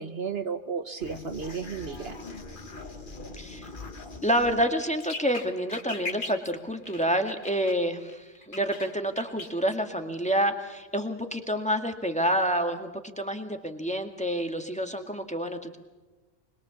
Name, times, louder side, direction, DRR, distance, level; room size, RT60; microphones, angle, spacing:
voice 1, 0.0-2.2, right 6 dB, 60° right, 9 dB, 1.3 m, -33 dB
sound 1, 1.0-7.8 8.1-9.8, left 3 dB, 45° left, 1.9 m, -41 dB
voice 2, 3.3-3.7 4.2-12.9 13.2-15.8, equal, 5° left, 5 dB, 2.0 m, -28 dB
25.5 x 21.5 x 7.2 m, 1.2 s
omnidirectional pair, 1.2 m